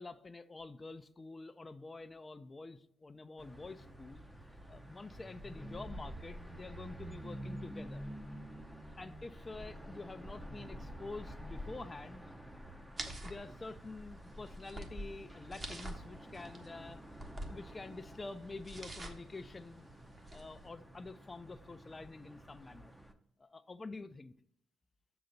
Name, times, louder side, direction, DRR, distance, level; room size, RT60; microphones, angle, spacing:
voice 1, 0.0-4.2 4.7-8.1 9.0-12.2 13.1-17.0 17.5-19.9 20.3-22.9 23.4-24.3, left 3 dB, 25° left, 10 dB, 0.4 m, -48 dB
sound 1, 3.4-23.1, equal, 5° right, 0.7 m, -49 dB
sound 2, 13.0-20.7, right 1 dB, 30° right, 1.2 m, -48 dB
6.8 x 3.9 x 6.5 m, 0.75 s
cardioid pair, 90°, 0 cm